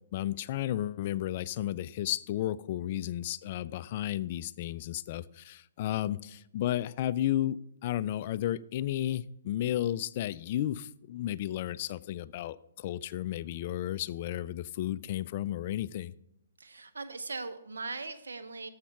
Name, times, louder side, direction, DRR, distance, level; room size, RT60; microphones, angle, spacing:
voice 1, 0.1-16.1, left 12 dB, 45° left, 17 dB, 0.3 m, -33 dB
voice 2, 16.6-18.7, right 3 dB, 90° right, 9 dB, 0.8 m, -39 dB
7.3 x 5.7 x 5.3 m, 0.78 s
hypercardioid pair, 145°, 0 cm